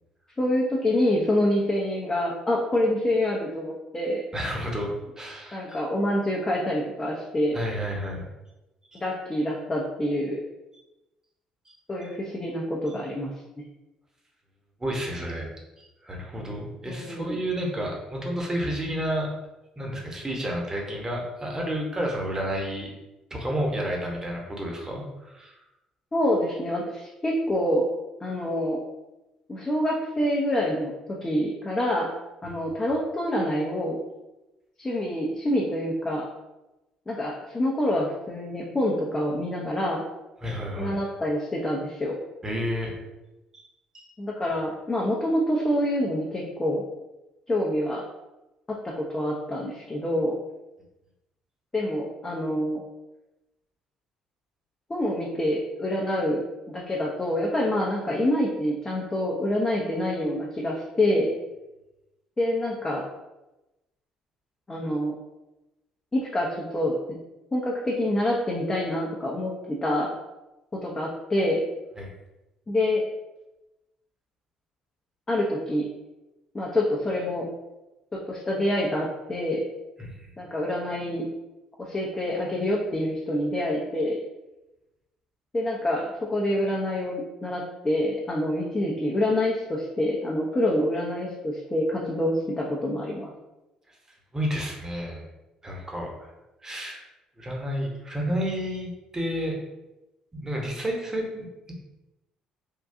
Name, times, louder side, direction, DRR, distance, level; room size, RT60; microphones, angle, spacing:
voice 1, 0.4-4.2 5.5-7.6 8.9-10.4 11.9-13.3 16.9-17.4 26.1-27.9 28.2-28.8 29.5-32.1 32.4-34.0 34.8-36.3 37.1-40.0 40.8-42.2 44.2-46.8 47.5-48.0 48.7-50.4 51.7-52.8 54.9-61.3 62.4-63.1 64.7-65.1 66.1-67.0 67.5-70.1 70.7-71.6 72.7-73.0 75.3-75.9 76.5-77.5 78.1-79.6 80.4-81.3 81.8-84.2 85.5-93.3, left 1 dB, 25° left, -3 dB, 0.6 m, -26 dB
voice 2, 4.3-4.9 5.2-5.8 7.5-8.3 8.9-9.0 11.7-11.8 14.8-15.5 15.8-19.3 19.8-22.9 23.3-25.6 40.4-41.0 42.4-43.0 43.5-43.6 43.9-44.1 72.0-72.1 80.0-80.1 94.3-95.2 95.6-96.3 96.6-97.1 97.4-99.6 100.3-101.7, equal, 20° right, -1 dB, 1.0 m, -31 dB
3.7 x 2.3 x 2.6 m, 0.99 s
hypercardioid pair, 55°, 3 cm